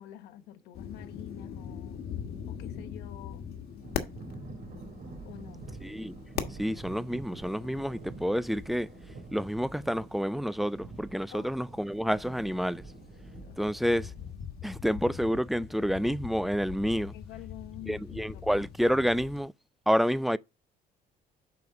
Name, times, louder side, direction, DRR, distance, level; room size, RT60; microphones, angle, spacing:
voice 1, 0.0-2.0 2.5-3.5 5.2-5.7 11.3-11.6 13.4-13.7 17.1-18.7, left 13 dB, 90° left, 1.1 m, -47 dB
sound 1, 0.7-19.4, left 8 dB, 70° left, 1.4 m, -43 dB
Thunder / Rain, 3.8-14.3, right 3 dB, 60° right, 4.3 m, -47 dB
voice 2, 5.8-6.1 6.6-8.9 9.3-12.8 13.6-14.1 14.6-17.1 17.9-19.5 19.9-20.4, equal, ahead, 0.3 m, -29 dB
7.7 x 5.2 x 3.6 m
cardioid pair, 110°, 17 cm